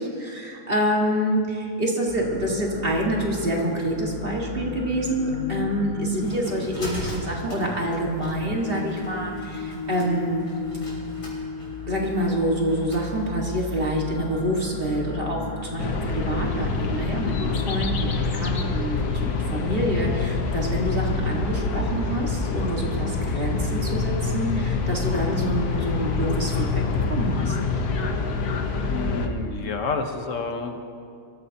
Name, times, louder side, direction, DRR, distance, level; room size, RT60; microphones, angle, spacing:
voice 1, 0.0-10.5 11.9-26.8 27.1-27.6, right 1 dB, 35° right, -1 dB, 2.0 m, -27 dB
sound 1, 2.1-17.9, left 3 dB, 30° left, 4.8 m, -35 dB
sound 2, 5.7-13.1, equal, 90° left, 4.3 m, -40 dB
sound 3, 15.8-29.3, left 4 dB, 70° left, 1.5 m, -26 dB
voice 2, 28.9-30.8, left 4 dB, 55° left, 5 dB, 1.3 m, -29 dB
23.5 x 14.0 x 2.9 m, 2.4 s
omnidirectional pair, 1.7 m